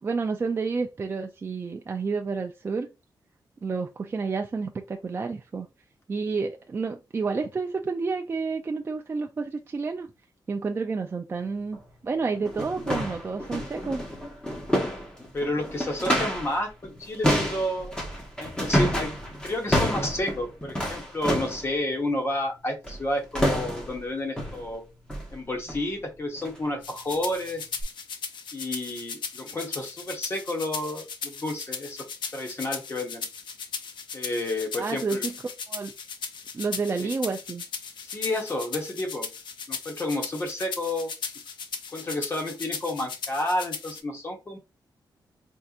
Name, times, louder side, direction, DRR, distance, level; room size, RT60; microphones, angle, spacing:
voice 1, 0.0-2.9 3.6-5.7 6.1-10.1 10.5-14.0 34.8-35.3 35.7-35.9 36.5-37.6, right 4 dB, 30° right, 0.4 m, -30 dB
sound 1, 11.7-11.8 12.3-16.6 16.8-21.7 22.8-23.1 23.3-24.0 24.4-24.7 25.1-25.3 25.7-25.9 26.4-26.6 27.1-27.2 27.8-27.9, equal, 10° left, 1.0 m, -28 dB
voice 2, 15.3-17.9 18.4-19.1 19.4-24.8 25.3-27.6 28.5-32.0 32.3-33.2 34.1-35.3 37.0-37.1 38.0-39.3 39.7-41.1 41.9-44.6, left 1 dB, 30° left, 1.1 m, -30 dB
sound 2, 26.8-44.0, left 6 dB, 80° left, 0.5 m, -37 dB
4.3 x 2.7 x 2.4 m
wide cardioid pair, 140°, 8 cm